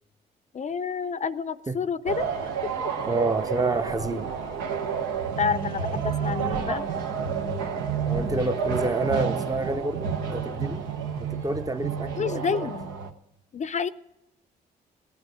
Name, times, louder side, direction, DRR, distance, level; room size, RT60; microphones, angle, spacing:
voice 1, 0.5-2.3 2.8-2.9 5.4-6.8 12.2-12.9 13.5-13.9, left 6 dB, 40° left, 0.5 m, -29 dB
sound 1, 2.1-13.1, right 6 dB, 90° right, 0.9 m, -30 dB
voice 2, 3.1-4.3 8.0-10.9 11.2-12.7, right 2 dB, 20° right, 0.6 m, -28 dB
16.5 x 9.1 x 6.1 m
supercardioid pair, 55°, 19 cm